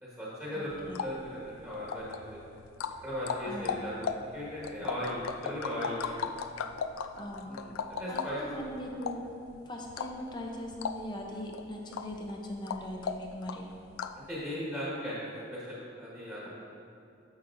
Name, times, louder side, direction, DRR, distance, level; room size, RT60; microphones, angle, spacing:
voice 1, 0.0-0.7 1.0-2.4 3.0-6.3 7.4-8.4 14.1-16.5, equal, 10° right, -8 dB, 1.6 m, -38 dB
voice 2, 0.5-1.0 3.5-3.7 7.1-7.5 8.1-9.2 9.7-13.7, equal, 20° left, 0 dB, 0.7 m, -40 dB
sound 1, 0.7-14.3, left 6 dB, 85° left, 0.3 m, -38 dB
9.6 x 7.1 x 2.6 m, 2.7 s
head